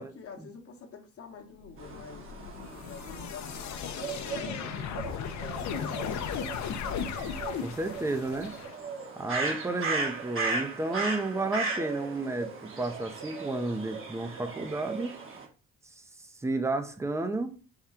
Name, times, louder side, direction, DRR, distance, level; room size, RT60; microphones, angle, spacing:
voice 1, 0.0-2.3 2.8-6.4, left 5 dB, 50° left, 1.0 m, -48 dB
sound 1, 1.6-8.7, left 7 dB, 70° left, 0.6 m, -36 dB
sound 2, 1.8-15.4, right 4 dB, 45° right, 1.1 m, -37 dB
voice 2, 7.6-8.5 9.2-15.1 16.0-16.1 16.4-17.5, right 2 dB, 10° right, 0.5 m, -32 dB
3.7 x 2.2 x 4.2 m
cardioid pair, 90°, 30 cm